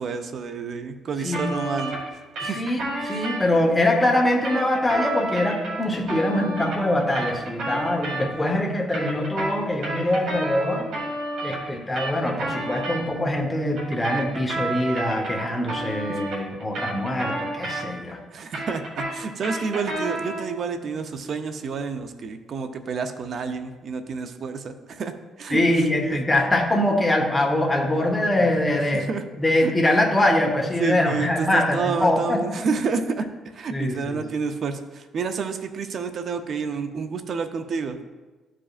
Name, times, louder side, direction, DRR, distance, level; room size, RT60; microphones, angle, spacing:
voice 1, 0.0-2.0 2.4-2.6 3.1-3.2 16.1-16.2 18.3-25.1 25.4-25.6 26.0-26.2 28.9-29.2 29.6-29.7 30.8-33.3 33.5-38.0, right 5 dB, 50° right, 7 dB, 0.5 m, -29 dB
sound 1, 1.3-3.4 4.2-8.5 8.8-13.0 13.8-18.1 18.4-20.5, right 2 dB, 75° right, 2.1 m, -31 dB
voice 2, 2.4-10.9 11.4-18.2 25.5-29.1 29.4-32.5 33.7-34.2, left 1 dB, 10° left, 1 dB, 1.0 m, -23 dB
12.5 x 4.9 x 2.4 m, 1.2 s
cardioid pair, 140°, 0 cm